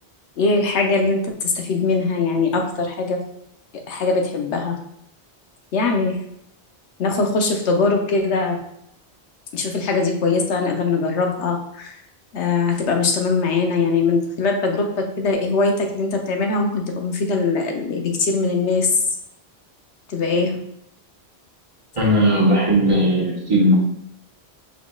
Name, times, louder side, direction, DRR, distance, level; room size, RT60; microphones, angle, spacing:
voice 1, 0.4-3.2 3.9-4.8 5.7-6.2 7.0-8.6 9.5-12.0 12.3-18.9 20.1-20.5, left 3 dB, 90° left, 2 dB, 1.0 m, -21 dB
voice 2, 21.9-23.8, equal, 30° right, -4 dB, 1.0 m, -17 dB
5.9 x 3.9 x 2.3 m, 0.73 s
omnidirectional pair, 1.1 m